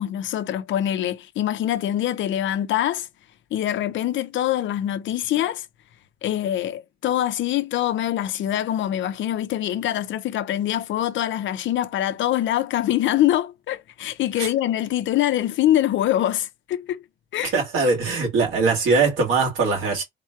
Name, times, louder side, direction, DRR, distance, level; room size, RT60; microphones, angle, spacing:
voice 1, 0.0-3.1 3.5-5.7 6.2-17.0 17.3-17.5, left 12 dB, 75° left, 0.6 m, -24 dB
voice 2, 17.4-20.0, right 4 dB, 85° right, 2.0 m, -21 dB
3.7 x 2.3 x 4.5 m
cardioid pair, 90°, 20 cm